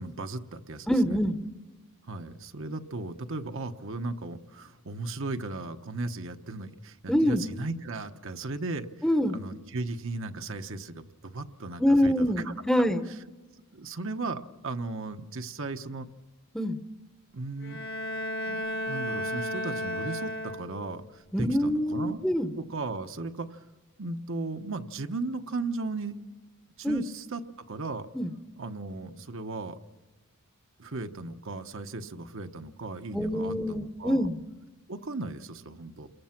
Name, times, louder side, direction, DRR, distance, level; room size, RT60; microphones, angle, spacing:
voice 1, 0.0-1.2 2.0-8.9 9.3-12.5 13.7-16.1 17.3-17.8 18.5-22.2 22.6-23.6 24.0-26.2 26.8-27.4 27.7-28.1 28.6-29.8 30.8-34.3 34.9-36.1, right 3 dB, 60° right, 7 dB, 1.1 m, -36 dB
voice 2, 0.9-1.4 7.1-7.4 9.0-9.4 11.8-13.0 16.5-16.8 21.3-22.5 26.8-27.0 28.1-28.3 33.1-34.4, equal, 5° left, 8 dB, 0.9 m, -25 dB
Bowed string instrument, 17.6-21.0, equal, 50° left, 1.2 m, -33 dB
29.0 x 22.5 x 5.9 m, 1.2 s
head